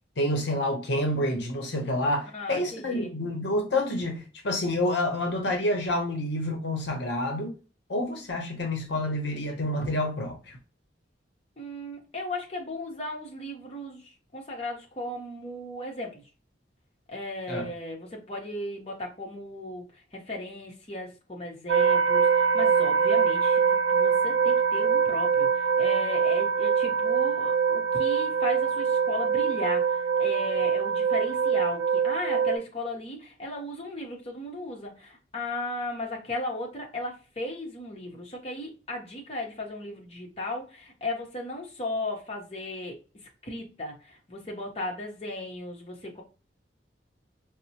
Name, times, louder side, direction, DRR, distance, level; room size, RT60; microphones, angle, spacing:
voice 1, 0.2-7.5 7.9-10.6 17.5-17.7, left 1 dB, 65° left, 0.8 m, -28 dB
voice 2, 2.3-3.1 11.6-16.2 17.1-19.9 20.1-43.0 43.4-46.2, left 1 dB, 35° left, 0.8 m, -36 dB
sound 1, 21.7-32.6, right 6 dB, 80° right, 0.6 m, -24 dB
4.1 x 2.0 x 2.8 m
head